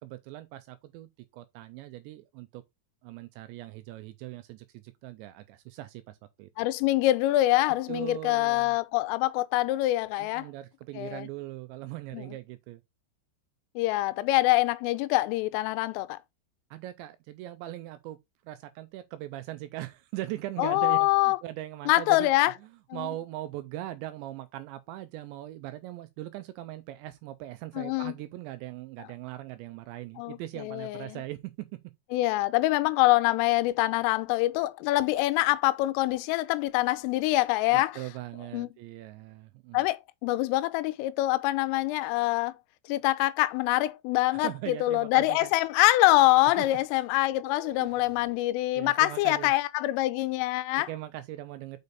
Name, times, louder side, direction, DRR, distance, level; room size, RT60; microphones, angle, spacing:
voice 1, 0.0-2.6 3.0-6.7 7.9-8.7 10.2-12.8 16.7-18.2 18.4-22.3 22.6-31.7 37.7-39.9 44.3-45.5 46.6-46.7 47.4-48.1 48.7-49.5 50.9-51.8, right 15 dB, 85° right, 2.6 m, -40 dB
voice 2, 6.6-10.5 11.0-11.3 12.1-12.2 13.8-16.2 20.6-21.4 21.9-22.5 22.9-23.1 27.8-28.1 30.2-31.2 32.1-38.0 38.5-38.7 39.7-42.5 42.9-50.9, left 18 dB, 90° left, 3.2 m, -25 dB
6.7 x 5.2 x 4.1 m
omnidirectional pair, 5.7 m